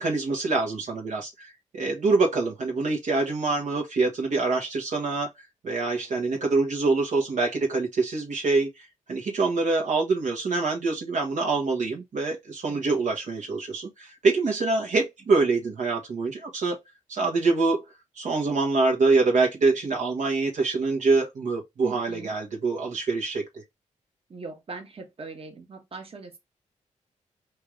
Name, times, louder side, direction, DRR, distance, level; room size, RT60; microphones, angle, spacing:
voice 1, 0.0-5.3 5.6-16.8 17.1-17.8 18.2-23.5, right 3 dB, 65° right, 1.2 m, -25 dB
voice 2, 21.8-22.3 24.3-26.4, right 4 dB, 45° right, 1.4 m, -40 dB
4.5 x 2.5 x 3.2 m
cardioid pair, 65°, 13 cm